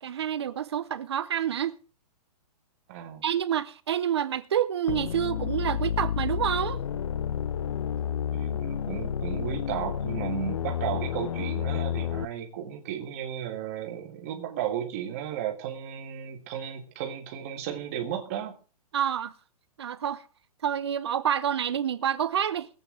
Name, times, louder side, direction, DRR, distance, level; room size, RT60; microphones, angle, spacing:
voice 1, 0.0-1.7 3.2-6.8 18.9-19.3 19.8-20.2 20.6-22.7, right 9 dB, 40° right, 0.6 m, -28 dB
voice 2, 2.9-3.2 8.3-18.5, right 10 dB, 25° right, 1.4 m, -34 dB
sound 1, 4.9-12.2, left 9 dB, 50° left, 0.5 m, -30 dB
21.5 x 8.3 x 3.7 m
hypercardioid pair, 180°, 21 cm